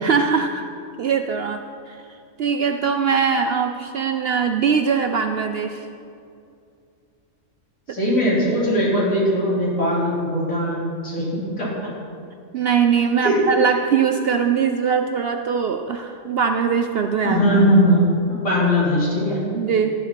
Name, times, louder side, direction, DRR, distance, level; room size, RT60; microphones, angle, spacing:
voice 1, 0.0-0.6 1.0-1.6 1.9-2.0 2.4-5.9 7.9-8.0 12.5-17.4 19.5-19.9, right 6 dB, 60° right, 6 dB, 0.6 m, -21 dB
voice 2, 7.9-11.7 13.2-13.4 17.2-18.1 18.4-19.4, equal, 80° left, -7 dB, 4.1 m, -19 dB
12.5 x 11.0 x 4.4 m, 2.4 s
omnidirectional pair, 1.4 m